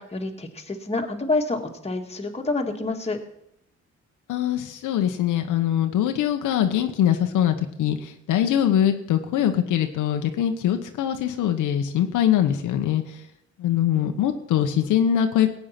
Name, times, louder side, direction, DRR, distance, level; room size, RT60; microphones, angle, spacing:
voice 1, 0.0-3.2, left 3 dB, 20° left, 2 dB, 2.0 m, -28 dB
voice 2, 4.3-13.0 13.6-15.5, left 10 dB, 85° left, 6 dB, 1.2 m, -22 dB
16.5 x 8.7 x 5.9 m, 0.79 s
cardioid pair, 90°, 30 cm